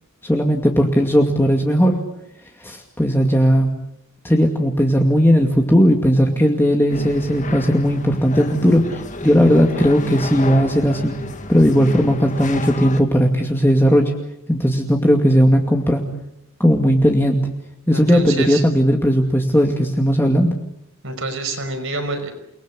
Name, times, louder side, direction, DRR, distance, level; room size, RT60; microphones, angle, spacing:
voice 1, 0.2-2.0 2.6-3.8 4.2-11.1 11.5-14.1 14.5-16.0 16.6-17.5 17.9-20.5, equal, 10° left, 2 dB, 2.4 m, -16 dB
sound 1, 6.9-13.0, left 2 dB, 35° left, 2.0 m, -31 dB
voice 2, 17.9-18.6 21.0-22.3, right 2 dB, 65° right, 8 dB, 5.6 m, -27 dB
29.5 x 21.0 x 8.3 m, 0.78 s
head